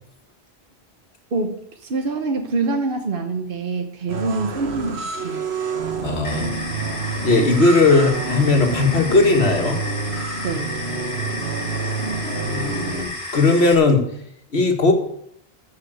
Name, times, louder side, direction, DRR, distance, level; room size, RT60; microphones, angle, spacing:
voice 1, 1.3-5.4 10.4-10.7, right 3 dB, 60° right, 5 dB, 1.2 m, -25 dB
sound 1, 4.1-13.0, right 4 dB, 80° right, 1.7 m, -28 dB
voice 2, 6.0-6.5 7.2-9.8 12.4-14.0 14.5-14.9, left 3 dB, 85° left, 3 dB, 2.1 m, -18 dB
sound 2, 6.2-13.7, left 2 dB, 45° left, 1.9 m, -32 dB
14.0 x 5.7 x 7.9 m, 0.72 s
omnidirectional pair, 1.1 m